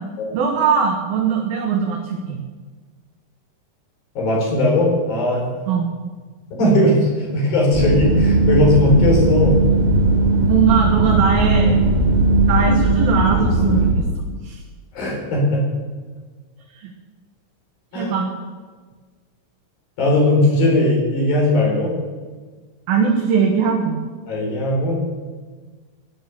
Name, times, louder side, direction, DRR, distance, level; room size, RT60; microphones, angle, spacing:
voice 1, 0.3-2.4 5.7-5.9 10.5-11.8 12.5-14.1 14.4-14.6 16.7-16.9 17.9-18.3 22.9-24.0, right 6 dB, 85° right, 0 dB, 3.4 m, -20 dB
voice 2, 4.2-5.5 6.6-9.6 14.9-15.6 17.9-18.1 20.0-21.9 24.3-25.0, left 1 dB, 80° left, -2 dB, 6.5 m, -18 dB
sound 1, 7.7-13.9, right 2 dB, 20° right, 1.4 m, -17 dB
16.0 x 11.0 x 6.9 m, 1.4 s
omnidirectional pair, 4.1 m